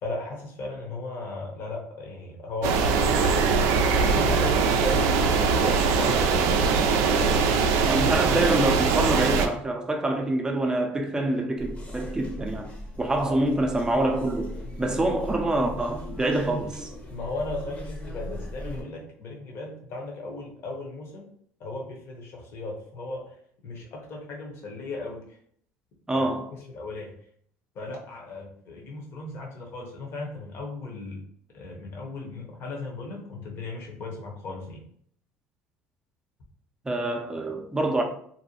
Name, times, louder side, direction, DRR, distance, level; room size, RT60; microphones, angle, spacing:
voice 1, 0.0-8.2 13.2-13.4 17.1-21.3 21.6-23.4 23.6-25.4 26.1-26.3 26.7-27.1 27.7-31.2 31.5-34.8, left 2 dB, 55° left, 0.9 m, -36 dB
sound 1, 2.6-9.5, right 5 dB, 70° right, 0.3 m, -22 dB
sound 2, 3.5-8.5 11.3-11.5, left 4 dB, 70° left, 0.4 m, -42 dB
voice 2, 7.8-12.7 13.0-14.5 14.8-16.9 26.1-26.5 36.9-38.0, right 1 dB, 15° right, 0.5 m, -26 dB
sound 3, 11.6-18.8, left 1 dB, 25° left, 0.7 m, -38 dB
2.7 x 2.1 x 2.8 m
supercardioid pair, 90°, 5 cm